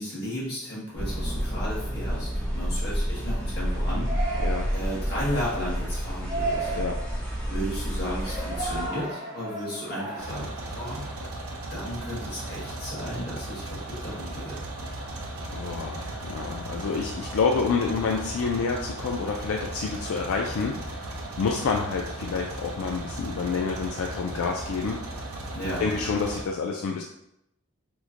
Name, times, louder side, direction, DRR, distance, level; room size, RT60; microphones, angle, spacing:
voice 1, 0.0-4.1 4.7-6.7 7.5-11.0 11.7-14.6 25.5-25.9, equal, 50° left, -7 dB, 1.4 m, -34 dB
sound 1, 0.9-8.9, equal, 10° left, 0.8 m, -29 dB
Yell, 3.6-11.3, right 3 dB, 15° right, 0.5 m, -36 dB
sound 2, 10.2-26.4, right 1 dB, 80° right, 0.6 m, -36 dB
voice 2, 15.5-21.1 21.4-25.0 25.8-27.0, left 5 dB, 80° left, 0 dB, 0.3 m, -28 dB
3.0 x 2.1 x 3.7 m, 0.82 s
head